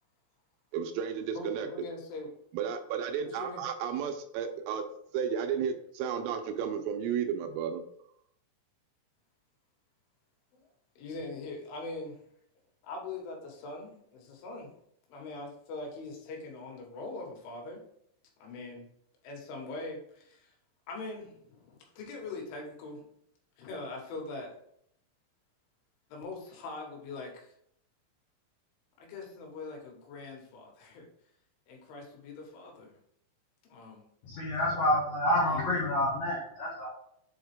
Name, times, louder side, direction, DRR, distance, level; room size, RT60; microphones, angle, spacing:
voice 1, 0.7-1.7 2.5-4.8 5.1-7.8, right 7 dB, 85° right, 6 dB, 3.1 m, -33 dB
voice 2, 1.4-2.3 3.3-3.6 10.6-10.7 11.0-12.2 12.8-14.7 15.1-17.8 18.4-18.9 19.2-20.5 20.9-23.0 23.6-24.5 26.1-27.5 29.0-31.1 31.7-33.0 33.6-34.0 35.5-35.8, left 3 dB, 75° left, 0 dB, 3.6 m, -42 dB
voice 3, 34.2-36.9, left 1 dB, 90° left, -4 dB, 1.9 m, -28 dB
7.9 x 3.7 x 3.5 m, 0.70 s
omnidirectional pair, 6.0 m